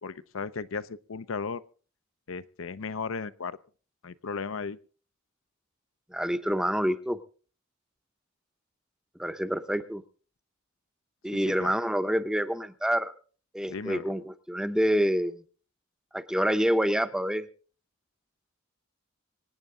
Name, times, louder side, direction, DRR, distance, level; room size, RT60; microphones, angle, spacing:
voice 1, 0.0-1.6 2.3-3.6 4.0-4.8 11.3-11.7 13.7-14.1, left 5 dB, 70° left, 13 dB, 0.6 m, -35 dB
voice 2, 6.1-7.2 9.2-10.0 11.2-13.1 13.5-15.4 16.1-17.4, equal, 5° right, 10 dB, 0.7 m, -27 dB
25.5 x 9.2 x 3.7 m, 0.40 s
head